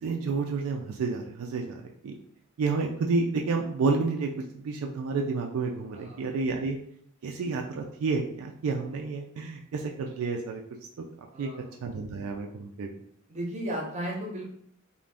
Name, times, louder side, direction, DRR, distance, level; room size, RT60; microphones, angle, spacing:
voice 1, 0.0-2.1 2.6-6.8 7.2-10.6 11.4-11.5 11.8-12.9, right 4 dB, 75° right, 1 dB, 0.3 m, -30 dB
voice 2, 5.9-6.2 11.3-11.7 13.3-14.5, right 1 dB, 30° right, -1 dB, 0.6 m, -35 dB
2.5 x 2.2 x 3.3 m, 0.66 s
head